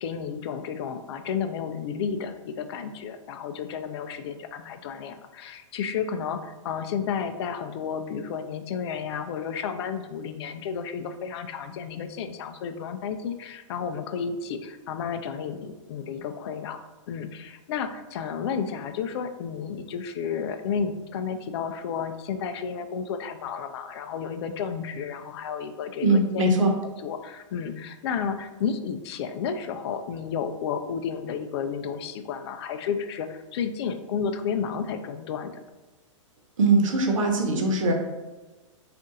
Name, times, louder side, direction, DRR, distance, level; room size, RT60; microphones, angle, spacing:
voice 1, 0.0-16.8 17.1-26.5 27.0-35.6, left 6 dB, 55° left, 8 dB, 0.4 m, -32 dB
voice 2, 26.0-26.8 36.6-37.9, right 2 dB, 75° right, 3 dB, 1.0 m, -21 dB
3.8 x 2.5 x 3.8 m, 1.2 s
hypercardioid pair, 130°, 17 cm